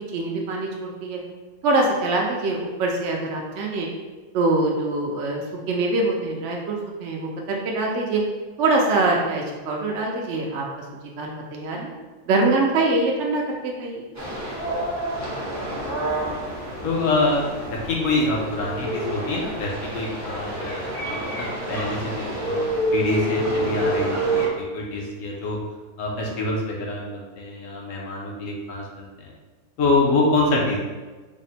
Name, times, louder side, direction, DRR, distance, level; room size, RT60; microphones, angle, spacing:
voice 1, 0.1-1.2 1.6-3.9 4.3-8.2 8.6-10.6 11.2-11.9 12.3-14.1, right 2 dB, 70° right, -1 dB, 0.7 m, -24 dB
sound 1, 14.1-24.5, right 1 dB, 25° right, 0.3 m, -28 dB
voice 2, 16.8-17.4 17.7-25.6 26.0-29.1 29.8-30.8, left 2 dB, 65° left, -2 dB, 1.0 m, -25 dB
3.5 x 2.0 x 4.0 m, 1.3 s
omnidirectional pair, 1.6 m